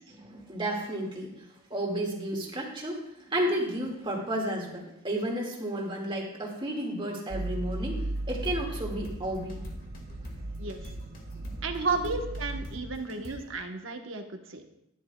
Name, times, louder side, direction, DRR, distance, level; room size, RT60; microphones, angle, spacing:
voice 1, 0.1-9.9 11.4-12.0, right 1 dB, 25° right, -1 dB, 2.0 m, -33 dB
sound 1, 7.3-12.8, right 2 dB, 50° right, 0.4 m, -37 dB
sound 2, 8.1-13.5, equal, 40° left, 1.7 m, -44 dB
voice 2, 11.6-14.6, right 3 dB, 65° right, 4 dB, 1.1 m, -33 dB
14.0 x 10.5 x 2.3 m, 0.82 s
head